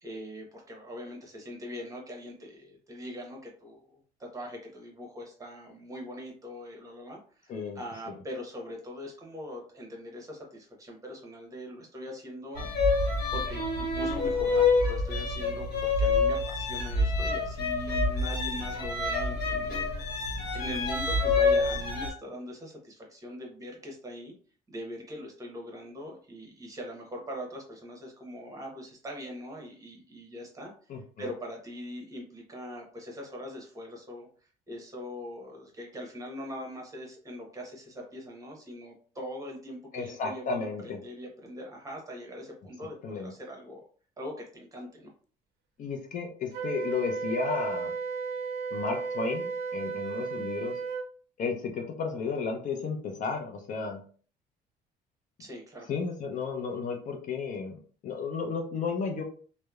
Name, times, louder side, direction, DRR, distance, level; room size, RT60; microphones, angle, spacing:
voice 1, 0.0-12.7 13.3-19.9 20.2-24.3 24.7-30.9 31.2-34.3 34.7-43.8 44.2-45.1 55.4-55.9, equal, 20° right, 0 dB, 0.9 m, -42 dB
sound 1, 12.6-22.1, left 3 dB, 65° left, 1.1 m, -27 dB
voice 2, 30.9-31.3 39.9-41.0 43.0-43.3 45.8-47.9 48.7-50.8 51.4-54.0 55.9-59.2, left 5 dB, 50° left, 2 dB, 0.5 m, -33 dB
Wind instrument woodwind instrument, 46.5-51.1, right 5 dB, 75° right, 0.4 m, -34 dB
2.9 x 2.1 x 2.3 m, 0.43 s
cardioid pair, 110°, 17 cm